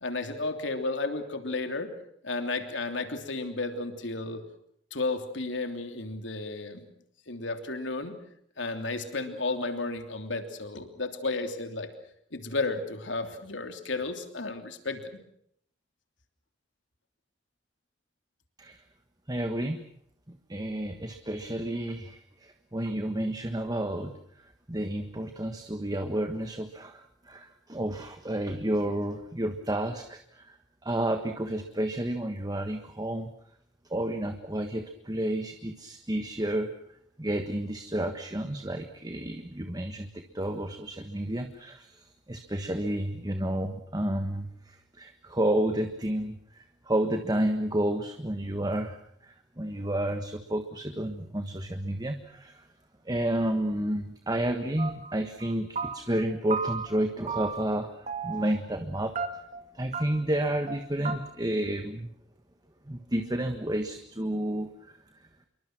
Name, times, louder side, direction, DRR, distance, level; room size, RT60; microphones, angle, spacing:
voice 1, 0.0-1.9 2.2-4.4 4.9-6.9 7.3-8.1 8.6-11.9 12.3-15.2, left 3 dB, 75° left, 7 dB, 3.1 m, -33 dB
voice 2, 19.3-19.8 20.3-30.6 30.8-33.3 33.9-36.7 37.2-52.7 53.0-59.2 59.7-62.1 62.8-65.3, right 1 dB, 20° right, 7 dB, 1.4 m, -31 dB
sound 1, 54.8-55.1 55.4-56.2 56.5-57.0 57.3-57.8 58.1-58.6 59.2-59.6 59.9-60.0 60.3-60.4 60.7-60.8 61.0-61.2, right 5 dB, 40° right, 2.3 m, -34 dB
27.5 x 23.5 x 6.1 m, 0.69 s
head